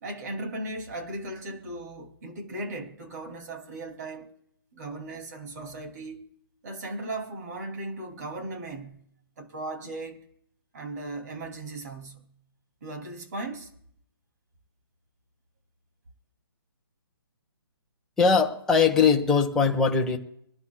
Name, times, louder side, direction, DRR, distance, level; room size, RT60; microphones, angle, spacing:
voice 1, 0.0-4.3 4.7-6.3 6.6-9.0 9.4-10.2 10.7-12.3 12.8-13.7, right 2 dB, 45° right, 2.8 m, -37 dB
voice 2, 18.2-20.2, left 5 dB, 5° left, 1.1 m, -21 dB
25.0 x 11.5 x 2.3 m
hypercardioid pair, 155°, 12 cm